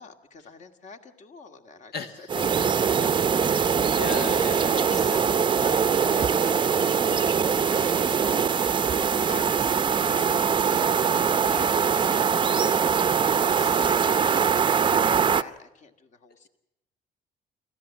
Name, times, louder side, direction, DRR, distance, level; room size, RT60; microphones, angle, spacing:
voice 1, 0.0-3.3 4.2-5.2 5.5-10.9 11.2-12.9 13.2-16.5, left 4 dB, 45° left, 6 dB, 2.1 m, -45 dB
voice 2, 1.9-2.4 3.3-3.7 4.0-4.7, left 5 dB, 70° left, 6 dB, 1.6 m, -35 dB
sound 1, 2.3-15.4, right 6 dB, 30° right, 0.7 m, -22 dB
27.0 x 15.0 x 7.4 m, 0.88 s
cardioid pair, 110°, 17 cm